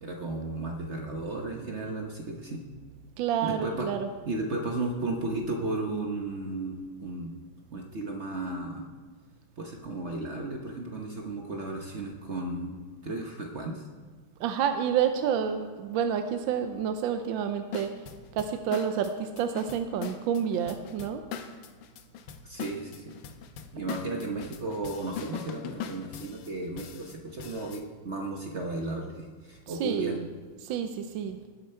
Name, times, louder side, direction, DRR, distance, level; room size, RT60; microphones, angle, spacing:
voice 1, 0.0-2.6 3.4-3.9 4.3-7.3 7.7-8.9 9.6-12.8 13.0-13.8 22.4-23.1 23.7-30.2, right 2 dB, 50° right, 1 dB, 0.9 m, -34 dB
voice 2, 3.2-4.1 14.4-17.9 18.3-21.2 29.7-30.3 30.6-31.4, right 8 dB, 75° right, 7 dB, 1.3 m, -29 dB
sound 1, 17.7-27.8, left 7 dB, 70° left, 1.4 m, -41 dB
19.0 x 6.9 x 4.4 m, 1.5 s
omnidirectional pair, 2.3 m